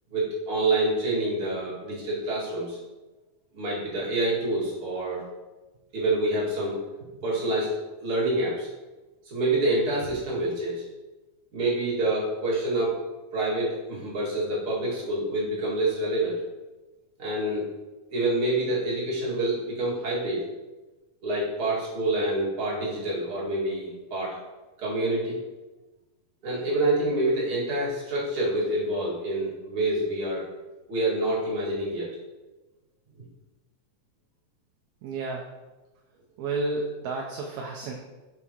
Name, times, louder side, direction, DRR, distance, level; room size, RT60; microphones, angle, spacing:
voice 1, 0.1-2.8 3.5-5.2 5.9-6.8 7.2-8.7 9.2-10.9 11.5-13.0 13.3-16.4 17.2-17.7 18.1-20.4 21.2-24.4 24.8-25.4 26.4-30.5 30.9-32.1, right 1 dB, 45° right, -7 dB, 2.8 m, -27 dB
voice 2, 35.0-35.5 36.4-37.9, right 3 dB, 75° right, 1 dB, 1.7 m, -31 dB
7.5 x 6.4 x 3.0 m, 1.2 s
omnidirectional pair, 3.6 m